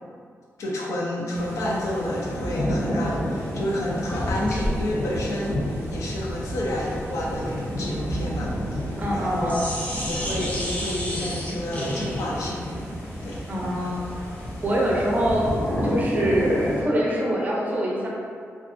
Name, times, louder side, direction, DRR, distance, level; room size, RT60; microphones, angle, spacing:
voice 1, 0.6-9.7 10.0-12.9 13.2-13.4 13.8-14.0, left 1 dB, 90° left, -4 dB, 0.5 m, -30 dB
sound 1, 1.3-16.8, equal, 60° left, 0.9 m, -31 dB
sound 2, 4.1-9.2 9.5-16.0, equal, 30° left, 0.5 m, -33 dB
voice 2, 9.0-9.6 13.5-14.1 14.6-15.5 15.8-18.1, equal, 35° right, -4 dB, 0.5 m, -24 dB
2.4 x 2.3 x 2.5 m, 2.1 s
wide cardioid pair, 130°, 5 cm